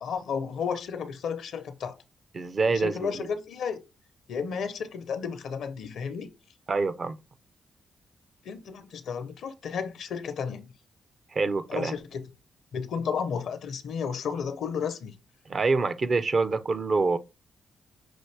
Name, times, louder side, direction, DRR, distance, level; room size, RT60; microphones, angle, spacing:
voice 1, 0.0-2.0 2.7-3.8 4.3-6.3 8.4-10.7 11.7-12.2 12.7-15.2, left 6 dB, 75° left, 0.7 m, -32 dB
voice 2, 2.3-3.1 6.7-7.2 11.3-11.9 15.5-17.2, right 3 dB, 50° right, 0.6 m, -26 dB
6.0 x 2.6 x 3.3 m
supercardioid pair, 60°, 0 cm